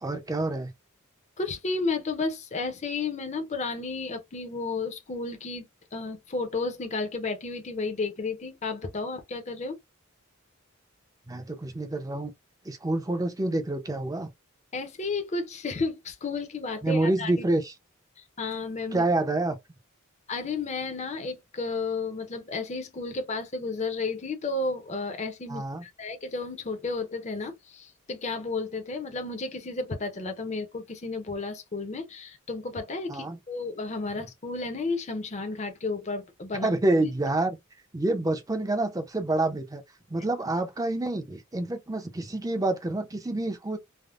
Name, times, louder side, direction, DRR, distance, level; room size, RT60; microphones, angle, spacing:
voice 1, 0.0-0.7 11.3-12.3 12.6-14.3 16.8-17.7 18.9-19.6 25.5-25.8 33.1-33.4 36.6-37.6 37.9-39.8 40.1-43.8, right 2 dB, 15° right, 0.5 m, -27 dB
voice 2, 1.4-5.7 5.9-9.8 14.7-17.3 18.2-19.1 20.3-36.7, left 3 dB, 35° left, 0.6 m, -32 dB
3.4 x 2.0 x 2.3 m
head